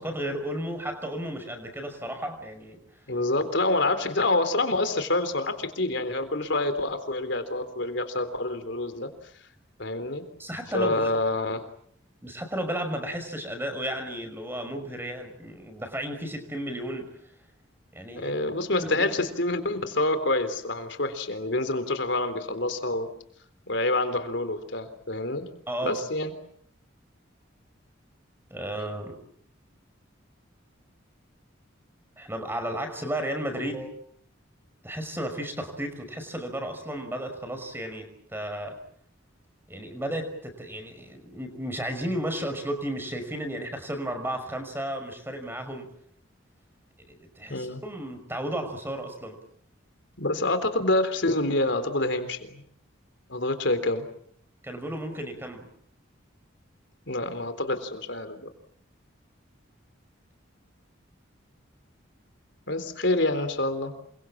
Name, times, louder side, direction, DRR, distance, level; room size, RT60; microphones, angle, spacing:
voice 1, 0.0-2.8 10.4-11.2 12.2-17.1 17.9-18.3 18.8-19.1 25.7-26.0 28.5-29.2 32.2-33.9 34.8-38.8 39.7-45.9 47.0-49.4 54.6-55.7, right 1 dB, 10° right, 7 dB, 5.7 m, -33 dB
voice 2, 3.1-9.1 9.8-10.2 10.7-11.6 18.1-23.1 23.7-25.5 25.8-26.3 47.5-47.8 50.2-52.6 53.3-54.1 57.1-58.5 62.7-63.9, left 2 dB, 60° left, 10 dB, 3.7 m, -27 dB
28.5 x 24.0 x 7.5 m, 0.65 s
head